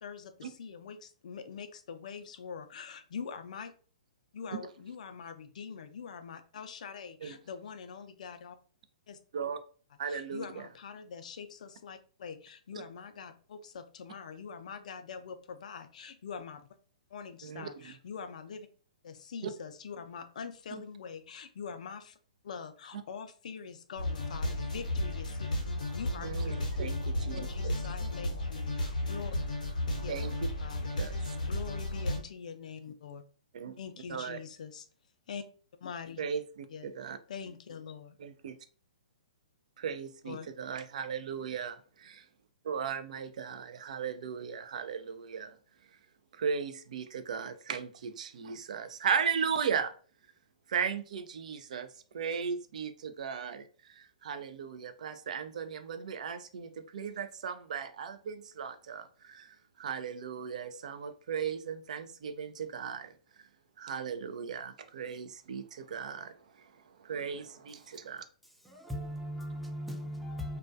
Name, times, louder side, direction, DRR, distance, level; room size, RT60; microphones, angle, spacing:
voice 1, 0.0-3.7 4.3-8.6 9.1-9.2 10.0-16.7 17.1-18.7 19.0-22.2 22.4-25.5 25.9-26.5 27.3-29.4 30.0-30.2 30.6-33.2 33.8-34.9 35.3-35.4 35.8-36.2 36.7-36.9 37.3-38.2 40.2-40.5, left 6 dB, 65° left, 0.4 m, -44 dB
voice 2, 10.0-10.4 17.4-17.7 19.4-19.5 26.2-27.7 30.1-30.3 31.0-31.2 33.5-33.8 34.1-34.4 36.2-37.2 38.2-38.6 39.8-42.3 42.6-45.6 46.3-49.9 50.7-51.9 52.1-63.5 63.8-68.2, right 6 dB, 65° right, 0.3 m, -37 dB
sound 1, 24.0-32.2, left 1 dB, 80° left, 0.7 m, -33 dB
voice 3, 68.6-70.6, equal, ahead, 0.5 m, -38 dB
2.2 x 2.2 x 2.5 m
hypercardioid pair, 125°, 4 cm